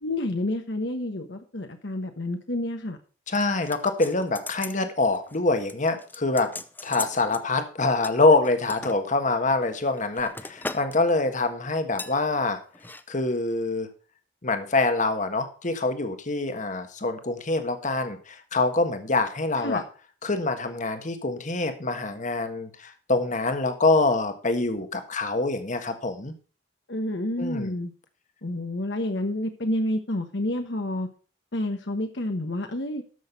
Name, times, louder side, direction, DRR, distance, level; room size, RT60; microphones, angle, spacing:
voice 1, 0.0-3.0 19.6-19.8 26.9-27.9 28.4-31.1 31.5-33.0, left 1 dB, 65° left, 6 dB, 1.2 m, -29 dB
voice 2, 3.3-6.5 6.8-12.6 13.1-13.9 14.4-19.8 20.2-26.3 27.4-27.7, left 3 dB, 40° left, 7 dB, 1.5 m, -25 dB
sound 1, 3.3-4.8 5.1-5.4 5.7-7.4 8.0-9.0 9.6-11.0 11.2-11.5 12.0-12.2 12.7-13.0 13.3-13.4, left 3 dB, 10° left, 0.6 m, -39 dB
13.0 x 6.5 x 5.3 m, 0.37 s
head